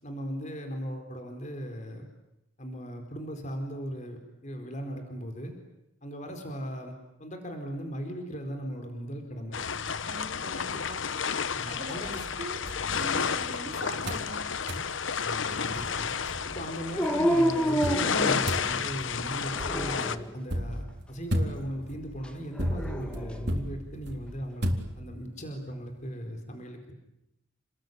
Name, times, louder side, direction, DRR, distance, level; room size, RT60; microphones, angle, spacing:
voice 1, 0.0-2.1 2.6-5.5 6.0-6.9 7.2-9.6 11.5-12.2 15.2-16.1 16.4-26.9, equal, 35° left, 5 dB, 4.5 m, -38 dB
sound 1, 9.5-20.2, left 6 dB, 70° left, 1.0 m, -31 dB
voice 2, 10.1-11.1 11.6-12.1 12.4-14.5 15.4-15.8, right 1 dB, 40° right, 5 dB, 4.1 m, -43 dB
sound 2, 12.0-13.6 14.1-14.3 14.7-14.9 15.4-15.5 15.7-16.8 17.8-25.4, equal, 55° right, 3.8 m, -35 dB
Dog, 17.0-18.9 19.5-20.3 22.6-23.4, equal, 5° left, 1.9 m, -28 dB
30.0 x 21.0 x 9.5 m, 0.86 s
head